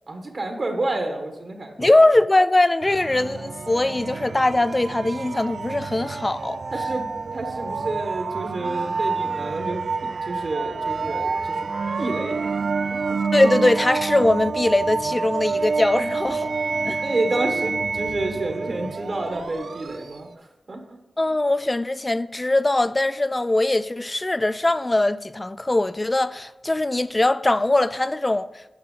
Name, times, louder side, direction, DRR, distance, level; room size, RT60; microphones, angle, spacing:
voice 1, 0.1-1.9 6.7-9.8 10.3-11.7 12.0-12.4 12.9-13.2 17.0-21.0, right 2 dB, 60° right, 1.3 m, -29 dB
voice 2, 1.8-6.6 13.3-16.5 16.8-17.0 21.2-28.5, left 2 dB, 30° left, 0.3 m, -21 dB
sound 1, 2.8-20.3, right 4 dB, 75° right, 0.3 m, -28 dB
8.7 x 5.7 x 3.8 m
cardioid pair, 40°, 0 cm